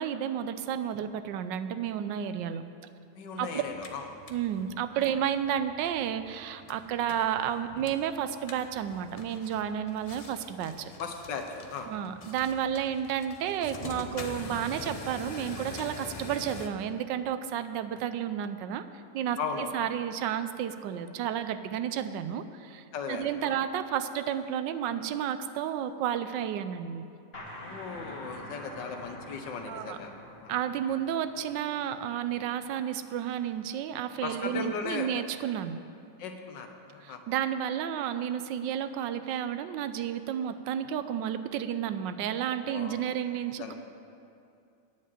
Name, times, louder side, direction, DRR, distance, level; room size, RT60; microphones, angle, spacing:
voice 1, 0.0-2.6 3.4-3.6 4.3-10.9 11.9-18.8 19.1-19.4 19.7-27.0 29.7-30.0 30.5-35.8 37.0-43.7, right 9 dB, 85° right, 11 dB, 1.3 m, -31 dB
voice 2, 3.2-4.1 11.0-11.9 19.4-19.7 22.9-23.5 27.6-30.1 30.4-30.5 34.2-35.1 36.2-37.2 42.6-43.0 43.6-43.7, left 5 dB, 80° left, 5 dB, 1.6 m, -37 dB
sound 1, 3.6-16.7, left 2 dB, 50° left, 0.4 m, -45 dB
sound 2, 27.3-32.8, left 1 dB, 35° left, 1.8 m, -46 dB
9.4 x 7.5 x 8.8 m, 2.5 s
omnidirectional pair, 1.9 m